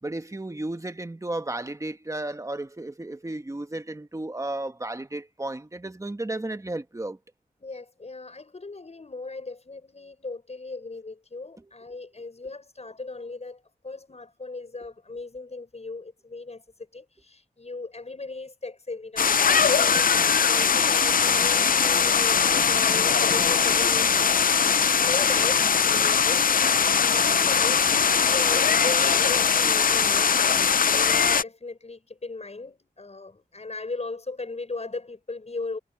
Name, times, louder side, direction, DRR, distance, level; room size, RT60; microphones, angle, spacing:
voice 1, 0.0-7.2 11.6-11.7 22.2-22.3, right 2 dB, 20° right, 1.5 m, -33 dB
voice 2, 7.6-16.6 16.9-35.8, left 3 dB, 40° left, 6.6 m, -37 dB
sound 1, 19.2-31.4, left 6 dB, 55° left, 0.5 m, -21 dB
wide cardioid pair, 100°, 17 cm